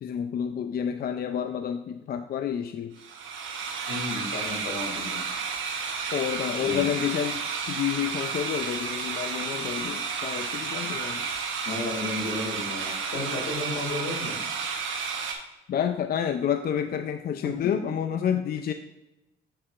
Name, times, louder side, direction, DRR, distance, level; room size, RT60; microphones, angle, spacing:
voice 1, 0.0-2.9 6.1-7.4 7.7-11.3 15.7-18.7, left 9 dB, 50° left, 8 dB, 0.4 m, -29 dB
sound 1, 3.0-15.3, right 5 dB, 80° right, 1.0 m, -32 dB
voice 2, 3.9-5.2 6.6-6.9 11.6-14.3 17.4-17.9, left 2 dB, 85° left, 0 dB, 2.3 m, -33 dB
7.5 x 6.5 x 2.5 m, 0.95 s
cardioid pair, 90°, 20 cm